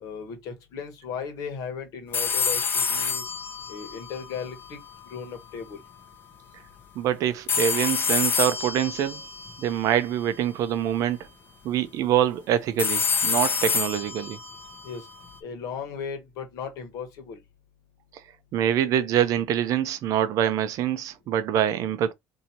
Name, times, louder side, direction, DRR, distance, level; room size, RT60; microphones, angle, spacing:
voice 1, 0.0-3.2 3.7-4.8 5.1-5.8 14.8-15.0 15.4-17.4, left 6 dB, 60° left, 1.3 m, -36 dB
sound 1, 2.1-5.2 7.5-10.6 12.8-15.4, left 5 dB, 30° left, 0.8 m, -28 dB
voice 2, 7.0-9.2 9.6-11.2 11.6-14.4 18.5-22.1, right 10 dB, 55° right, 0.5 m, -25 dB
2.7 x 2.7 x 4.3 m
cardioid pair, 150°, 7 cm